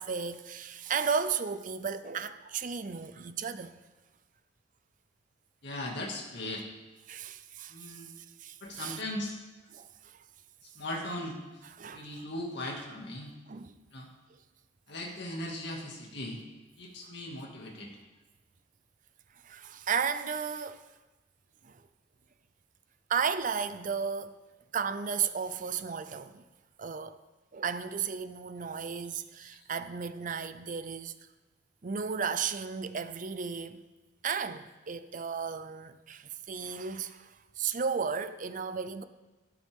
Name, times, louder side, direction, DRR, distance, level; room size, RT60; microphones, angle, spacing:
voice 1, 0.0-3.8 7.1-8.0 8.4-9.0 9.7-9.9 11.8-12.1 13.5-13.7 19.4-20.8 21.6-21.8 23.1-24.4 24.7-26.4 26.8-27.2 27.5-31.1 31.8-33.8 34.2-39.0, right 6 dB, 45° right, 0.6 m, -34 dB
voice 2, 5.6-6.7 7.7-8.1 8.6-9.3 10.7-11.4 11.9-13.3 13.9-14.1 14.9-16.4 16.8-17.9 29.4-29.5, left 1 dB, 60° left, 2.2 m, -38 dB
13.5 x 12.5 x 3.7 m
head